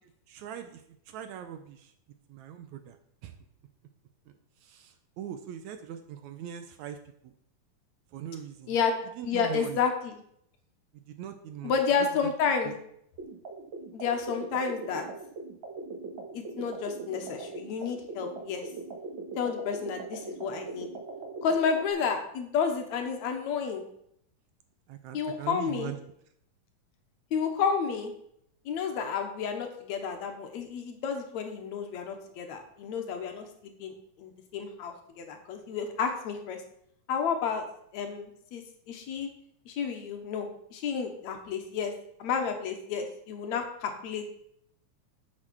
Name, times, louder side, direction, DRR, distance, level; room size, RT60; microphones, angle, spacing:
voice 1, 0.3-0.8 1.1-1.9 2.3-3.0 3.2-3.3 4.6-7.0 7.2-7.3 8.1-8.8 9.2-9.8 11.1-11.7 12.7-12.8 24.9-26.0, right 10 dB, 75° right, 8 dB, 1.9 m, -41 dB
voice 2, 9.3-10.2 11.6-12.8 13.9-15.0 16.3-18.6 19.4-20.9 21.4-23.8 25.1-25.9 27.3-28.1 28.7-36.6 37.1-37.6 37.9-39.3 39.7-41.9 42.2-44.3, left 6 dB, 70° left, 4 dB, 2.2 m, -31 dB
sound 1, 13.2-21.9, right 3 dB, 45° right, 1.8 m, -41 dB
8.7 x 6.6 x 6.1 m, 0.71 s
omnidirectional pair, 3.7 m